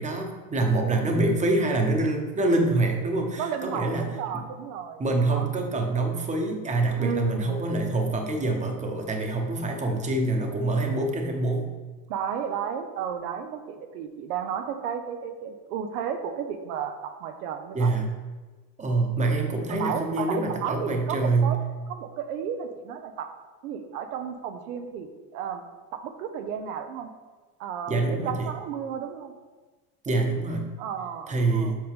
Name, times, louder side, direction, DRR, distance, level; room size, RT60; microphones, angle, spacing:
voice 1, 0.0-4.1 4.3-4.5 5.0-11.7 17.7-18.1 18.8-21.5 27.9-28.5 30.0-30.7 31.3-31.8, right 2 dB, 15° right, 3 dB, 1.0 m, -25 dB
voice 2, 0.8-1.2 3.4-5.5 7.0-7.6 12.1-18.0 19.7-21.6 21.9-23.3 23.6-25.6 25.9-27.1 27.6-29.3 30.8-31.7, right 7 dB, 80° right, 7 dB, 0.8 m, -33 dB
7.5 x 5.2 x 3.6 m, 1.3 s
supercardioid pair, 115°, 44 cm